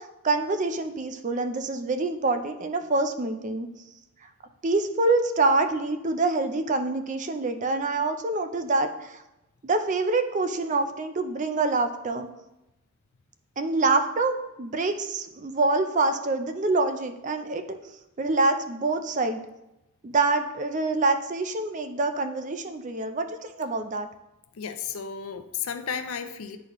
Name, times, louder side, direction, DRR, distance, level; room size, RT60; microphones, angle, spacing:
voice 1, 0.0-3.7 4.6-9.2 9.6-12.3 13.6-17.8 18.2-19.4 20.0-24.1, right 3 dB, 35° right, 8 dB, 0.4 m, -26 dB
voice 2, 24.6-26.6, left 7 dB, 75° left, 9 dB, 0.6 m, -33 dB
10.0 x 4.1 x 3.0 m, 0.92 s
head